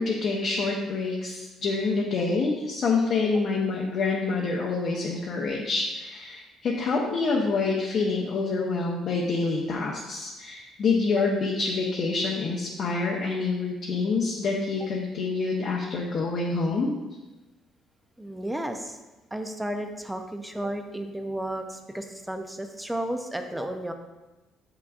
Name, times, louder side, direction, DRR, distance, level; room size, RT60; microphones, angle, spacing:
voice 1, 0.0-16.9, left 4 dB, 45° left, -2 dB, 0.7 m, -27 dB
voice 2, 18.2-19.0 19.3-23.9, right 1 dB, 5° right, 6 dB, 0.4 m, -33 dB
7.7 x 5.9 x 2.4 m, 1.1 s
cardioid pair, 155°, 0 cm